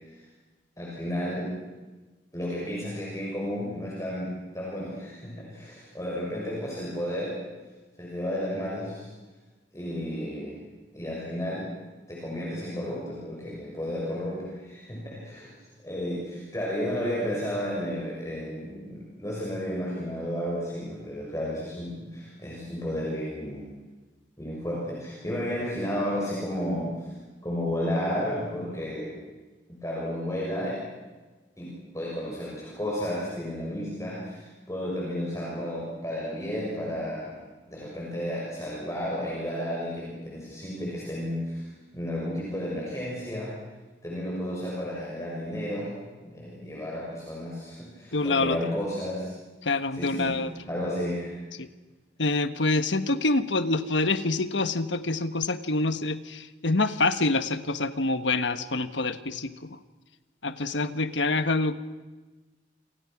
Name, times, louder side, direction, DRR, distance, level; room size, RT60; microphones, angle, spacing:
voice 1, 0.8-1.5 2.3-7.4 8.0-9.1 9.7-10.6 10.9-11.7 12.1-15.5 15.8-23.6 24.4-27.1 27.4-29.1 29.7-30.8 31.6-37.4 37.7-41.7 41.9-43.5 44.0-45.9 46.2-49.3 49.9-50.4 50.6-51.4, equal, 15° left, -4 dB, 6.5 m, -32 dB
voice 2, 48.1-48.6 49.6-50.5 51.6-51.7 52.2-59.8 60.4-61.7, left 2 dB, 90° left, 10 dB, 1.4 m, -26 dB
28.5 x 27.5 x 6.1 m, 1.2 s
head